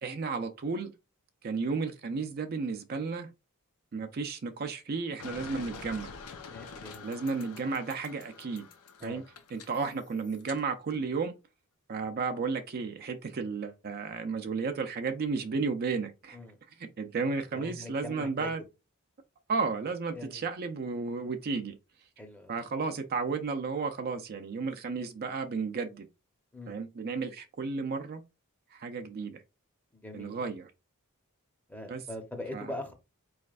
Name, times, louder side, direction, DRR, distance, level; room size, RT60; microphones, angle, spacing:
voice 1, 0.0-0.9 1.4-3.3 3.9-6.1 7.0-8.7 9.0-9.2 9.5-11.3 11.9-16.4 16.8-18.6 19.5-21.8 22.5-26.1 26.7-28.2 28.7-29.4 30.1-30.7 31.9-32.0 32.5-32.7, right 4 dB, 45° right, 0.4 m, -33 dB
sound 1, 5.2-10.6, left 5 dB, 85° left, 0.6 m, -46 dB
voice 2, 6.5-7.1 9.0-9.2 16.3-16.6 17.5-18.5 20.1-20.4 22.2-22.5 26.5-26.8 29.9-30.3 31.7-32.9, left 1 dB, 10° left, 0.8 m, -42 dB
4.2 x 3.2 x 2.4 m
head